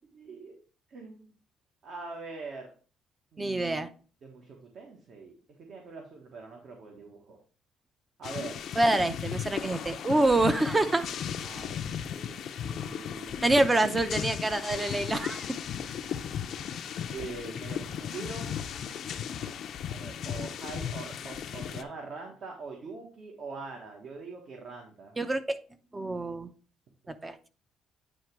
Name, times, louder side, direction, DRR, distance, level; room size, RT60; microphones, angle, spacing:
voice 1, 0.1-0.6 0.9-1.3 1.8-2.7 3.3-3.7 4.2-7.4 8.2-8.6 10.8-13.5 17.1-18.5 19.9-25.2, right 4 dB, 50° right, 1 dB, 1.3 m, -43 dB
voice 2, 3.4-3.9 8.8-11.0 13.4-15.5 25.2-25.6 25.9-26.5 27.1-27.3, right 2 dB, 15° right, 10 dB, 0.6 m, -26 dB
sound 1, 8.2-21.8, left 8 dB, 55° left, 0.5 m, -36 dB
8.8 x 3.0 x 4.6 m, 0.39 s
cardioid pair, 130°, 0 cm